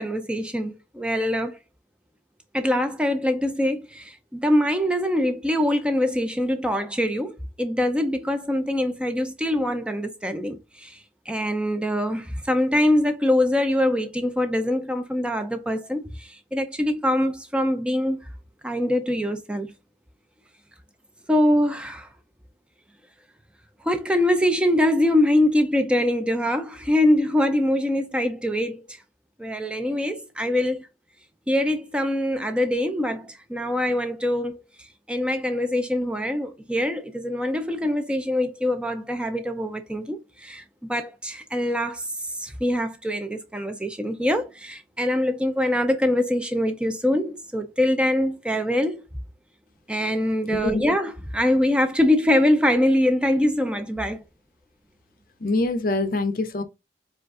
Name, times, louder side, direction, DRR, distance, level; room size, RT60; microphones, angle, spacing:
voice 1, 0.0-1.6 2.5-11.0 11.3-18.3 18.6-19.7 21.3-22.1 23.8-29.0 29.4-30.9 31.5-49.0 49.9-54.2, left 1 dB, 5° right, 0.4 m, -24 dB
voice 2, 50.5-50.8 55.4-56.6, left 2 dB, 50° left, 0.6 m, -24 dB
5.0 x 2.4 x 3.6 m
head